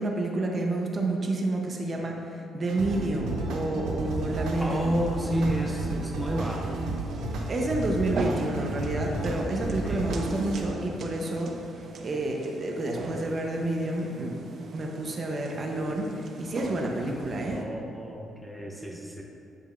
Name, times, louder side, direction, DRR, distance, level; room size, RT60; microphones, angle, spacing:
voice 1, 0.0-4.9 7.5-11.5 12.0-14.3 14.7-17.6, right 2 dB, 40° right, 1 dB, 0.8 m, -29 dB
sound 1, 2.7-10.7, right 2 dB, 85° right, 0.8 m, -33 dB
sound 2, 4.0-17.6, right 3 dB, 60° right, 0.5 m, -40 dB
voice 2, 4.6-6.7 9.8-10.0 17.5-19.2, right 1 dB, ahead, -1 dB, 0.6 m, -30 dB
8.4 x 5.2 x 2.5 m, 2.6 s
cardioid pair, 90°, 0 cm